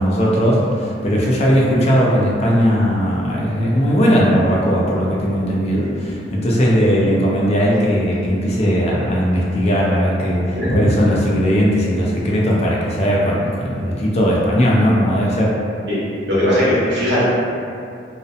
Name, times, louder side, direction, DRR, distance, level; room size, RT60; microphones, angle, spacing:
voice 1, 0.0-15.6, equal, 35° left, -4 dB, 0.4 m, -18 dB
voice 2, 16.3-17.2, equal, 70° right, -10 dB, 1.0 m, -18 dB
2.6 x 2.0 x 2.4 m, 2.5 s
head